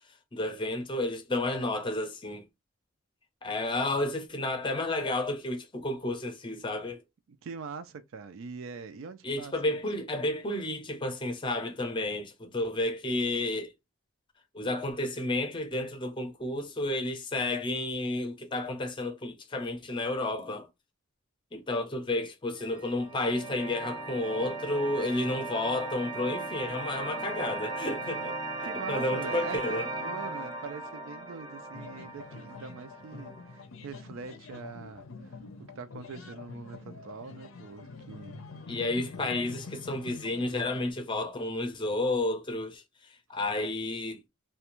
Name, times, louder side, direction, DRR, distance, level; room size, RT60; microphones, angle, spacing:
voice 1, 0.3-2.5 3.4-7.0 9.2-13.7 14.5-20.7 21.5-28.4 28.9-29.9 38.7-44.2, left 2 dB, 25° left, 0.6 m, -31 dB
voice 2, 7.3-9.8 28.6-38.5, right 5 dB, 75° right, 0.4 m, -43 dB
sound 1, 22.6-33.6, right 2 dB, 25° right, 0.6 m, -37 dB
sound 2, 31.7-40.9, left 4 dB, 75° left, 0.5 m, -46 dB
2.5 x 2.2 x 2.9 m
head